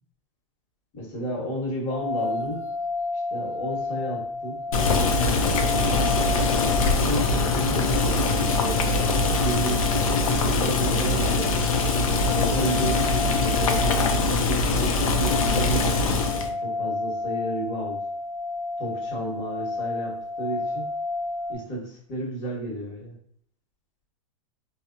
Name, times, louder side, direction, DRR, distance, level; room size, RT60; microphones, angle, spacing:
voice 1, 0.9-2.6 3.3-6.0 7.0-11.7 12.3-18.0 18.8-20.9 21.5-23.2, right 1 dB, 40° left, -2 dB, 1.1 m, -33 dB
sound 1, 1.9-21.6, left 3 dB, 10° left, 0.3 m, -32 dB
Boiling, 4.7-16.5, left 3 dB, 85° left, 0.5 m, -23 dB
3.0 x 2.0 x 2.5 m, 0.62 s
hypercardioid pair, 140°, 17 cm